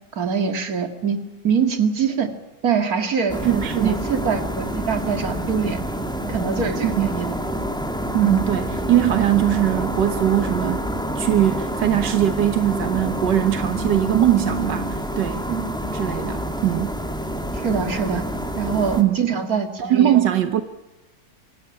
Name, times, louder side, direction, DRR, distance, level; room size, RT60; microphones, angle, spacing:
voice 1, 0.1-1.2 1.4-2.3 2.6-3.4 3.8-5.8 6.3-7.4 8.2-8.4 15.5-15.6 17.5-18.3 18.6-20.2, right 6 dB, 55° right, 2.7 m, -23 dB
sound 1, 3.3-19.0, equal, ahead, 2.1 m, -27 dB
voice 2, 3.4-3.9 6.8-7.2 8.1-10.9 11.2-15.5 15.9-17.0 19.0-19.2 19.8-20.6, right 12 dB, 85° right, 1.8 m, -21 dB
25.5 x 16.5 x 8.8 m
omnidirectional pair, 1.8 m